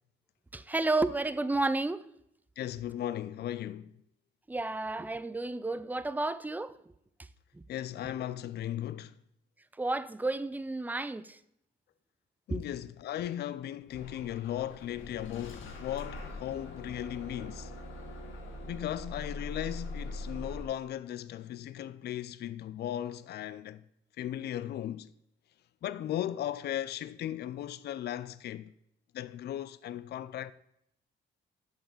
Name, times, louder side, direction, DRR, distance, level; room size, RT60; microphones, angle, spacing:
voice 1, 0.5-2.0 4.5-6.8 7.5-7.6 9.8-11.4 12.5-12.6, right 2 dB, 10° right, 0.4 m, -31 dB
voice 2, 2.6-4.0 7.7-9.2 12.5-17.7 18.6-23.8 24.2-25.1 25.8-28.7 29.1-30.5, left 11 dB, 55° left, 0.4 m, -37 dB
Bus / Engine starting, 13.9-20.6, left 2 dB, 80° left, 1.4 m, -42 dB
6.7 x 5.6 x 7.3 m
cardioid pair, 90°, 20 cm